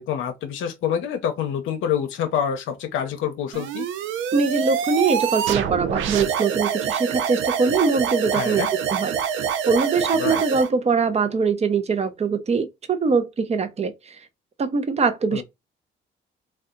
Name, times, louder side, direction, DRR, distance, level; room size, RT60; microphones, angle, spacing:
voice 1, 0.0-3.9 8.3-8.7 10.1-10.4 15.3-15.4, left 8 dB, 80° left, 0.6 m, -26 dB
sound 1, 3.5-10.7, right 8 dB, 80° right, 0.5 m, -26 dB
voice 2, 4.3-8.6 8.9-9.2 9.7-13.9 14.6-15.4, right 4 dB, 30° right, 0.6 m, -22 dB
2.7 x 2.3 x 3.6 m
cardioid pair, 90°, 20 cm